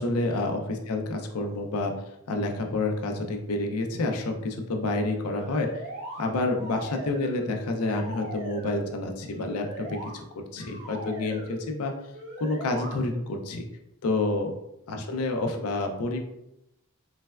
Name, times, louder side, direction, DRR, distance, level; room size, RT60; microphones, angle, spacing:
voice 1, 0.0-1.9 2.3-5.7 6.2-10.2 10.5-11.9 12.4-13.6 14.0-14.5 14.9-16.3, left 2 dB, 85° left, 3 dB, 0.4 m, -28 dB
sound 1, 5.2-6.2 6.6-7.5 7.8-8.8 9.3-10.1 10.6-11.6 12.1-12.9, right 2 dB, 65° right, 1.0 m, -39 dB
3.2 x 2.2 x 2.2 m, 0.85 s
head